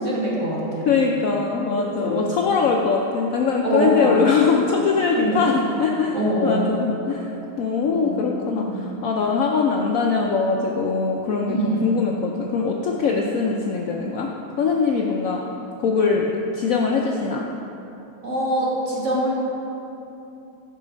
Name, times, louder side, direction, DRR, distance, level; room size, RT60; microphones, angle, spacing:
voice 1, 0.0-0.9 1.8-2.3 3.6-4.3 5.2-5.4 6.1-6.7 7.9-8.2 8.5-8.8 11.5-11.8 16.1-16.2 18.2-19.3, right 1 dB, 45° right, -6 dB, 2.1 m, -24 dB
voice 2, 0.8-6.2 6.4-7.3 7.6-11.6 11.8-14.3 14.6-15.4 15.8-17.4, left 5 dB, 65° left, 0 dB, 0.8 m, -22 dB
10.5 x 5.8 x 5.1 m, 2.9 s
omnidirectional pair, 1.9 m